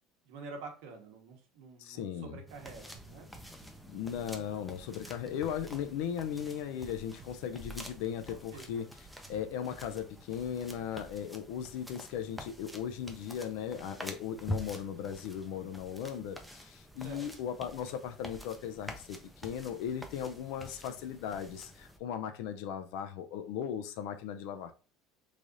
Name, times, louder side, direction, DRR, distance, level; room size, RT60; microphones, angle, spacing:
voice 1, 0.2-3.3 8.5-8.7 17.0-17.3, right 4 dB, 75° right, 0.9 m, -47 dB
voice 2, 1.8-2.4 3.9-8.9 9.3-24.7, left 9 dB, 75° left, 0.3 m, -37 dB
sound 1, 2.5-22.0, equal, ahead, 0.4 m, -47 dB
sound 2, 2.9-11.4, right 4 dB, 45° right, 0.7 m, -60 dB
3.2 x 2.4 x 3.8 m
cardioid pair, 160°, 0 cm